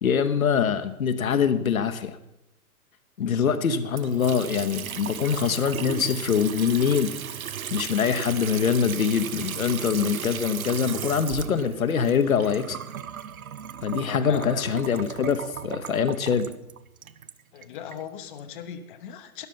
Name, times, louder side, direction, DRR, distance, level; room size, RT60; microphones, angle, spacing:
voice 1, 0.0-2.2 3.2-7.1 7.7-12.8 13.8-16.5, left 7 dB, 65° left, 9 dB, 1.0 m, -24 dB
voice 2, 3.2-3.5 14.0-14.7 17.5-19.5, left 8 dB, 35° left, 8 dB, 0.9 m, -38 dB
Water tap faucet / Sink (filling or washing) / Trickle dribble, 3.9-18.0, right 9 dB, 65° right, 0.7 m, -36 dB
12.5 x 11.0 x 5.4 m, 0.86 s
figure-of-eight pair, 120°, 45 cm